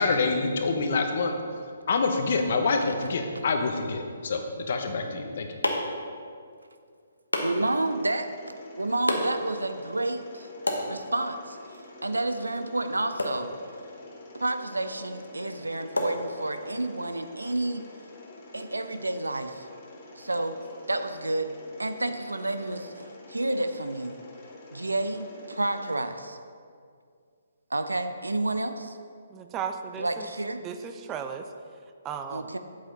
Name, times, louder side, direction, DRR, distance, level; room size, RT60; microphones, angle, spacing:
voice 1, 0.0-1.3 1.9-5.5, left 4 dB, 55° left, 5 dB, 0.9 m, -26 dB
sound 1, 5.0-16.9, left 1 dB, 80° left, 1.2 m, -35 dB
voice 2, 7.4-8.3 8.8-10.5 10.9-11.6 12.0-13.5 14.3-17.8 18.5-19.7 20.2-20.6 20.9-21.5 21.8-24.2 24.7-26.4 27.7-29.0 30.0-30.6 32.3-32.6, right 2 dB, 80° right, 9 dB, 0.6 m, -30 dB
Mechanisms, 7.5-26.0, left 2 dB, 35° left, 1.6 m, -48 dB
voice 3, 29.3-30.3 30.6-31.5 32.0-32.5, right 7 dB, 20° right, 7 dB, 0.5 m, -35 dB
8.3 x 7.8 x 3.9 m, 2.2 s
figure-of-eight pair, 135°, 0 cm